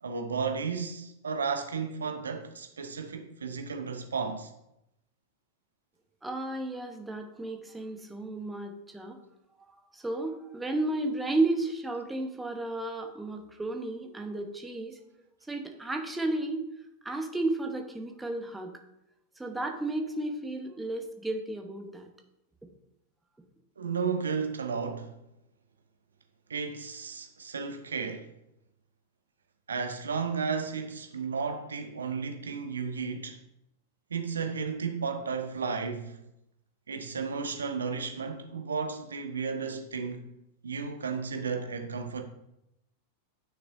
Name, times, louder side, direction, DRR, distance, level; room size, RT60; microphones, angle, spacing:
voice 1, 0.0-4.5 23.8-25.2 26.5-28.3 29.7-33.4 34.1-36.2 36.9-40.3 40.6-42.2, right 5 dB, 70° right, 0.9 m, -33 dB
voice 2, 6.2-9.2 9.7-15.0 15.5-16.6 17.0-18.7 19.4-22.1, right 2 dB, 10° right, 1.1 m, -33 dB
9.3 x 6.5 x 2.7 m
figure-of-eight pair, 90°, 0 cm